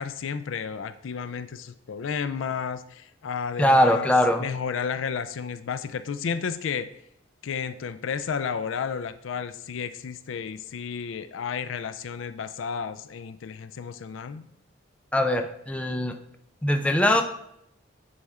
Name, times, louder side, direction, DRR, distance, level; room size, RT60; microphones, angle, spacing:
voice 1, 0.0-4.1 4.4-6.9 7.4-14.4, left 6 dB, 75° left, 12 dB, 0.4 m, -32 dB
voice 2, 3.6-4.5 15.1-16.1 16.6-17.2, left 1 dB, 5° left, 5 dB, 0.5 m, -21 dB
9.4 x 4.2 x 3.6 m, 0.76 s
head